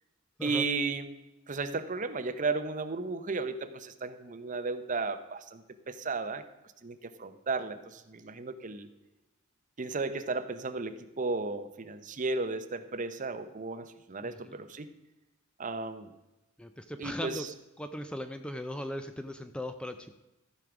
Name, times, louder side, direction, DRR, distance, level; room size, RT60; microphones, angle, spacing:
voice 1, 0.4-1.1 1.5-6.5 6.8-8.9 9.8-14.9 15.6-16.1 17.0-17.5, right 3 dB, 40° right, 10 dB, 0.7 m, -34 dB
voice 2, 14.2-14.6 16.6-17.5 17.8-20.1, equal, 5° left, 9 dB, 0.4 m, -38 dB
14.5 x 5.2 x 5.9 m, 1.0 s
head